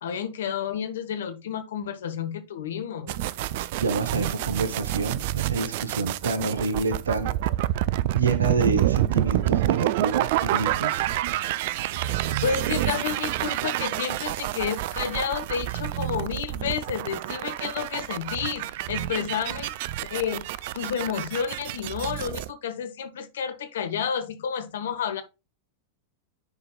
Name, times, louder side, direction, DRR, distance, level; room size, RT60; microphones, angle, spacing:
voice 1, 0.0-3.2 12.0-19.7 20.1-20.4 20.7-25.2, left 7 dB, 60° left, 1.0 m, -30 dB
sound 1, 3.1-22.5, right 14 dB, 50° right, 0.3 m, -28 dB
voice 2, 3.8-7.4 8.1-11.0, right 4 dB, 70° right, 0.9 m, -28 dB
9.8 x 4.5 x 2.3 m
figure-of-eight pair, 90°, 0 cm